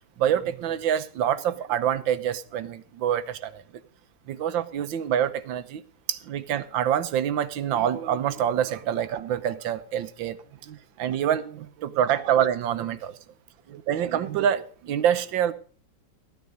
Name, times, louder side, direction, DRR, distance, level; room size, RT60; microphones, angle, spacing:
voice 1, 0.2-3.6 4.3-5.8 6.1-13.1 13.7-15.5, right 9 dB, 90° right, 1.6 m, -26 dB
14.5 x 9.5 x 5.2 m
omnidirectional pair, 2.0 m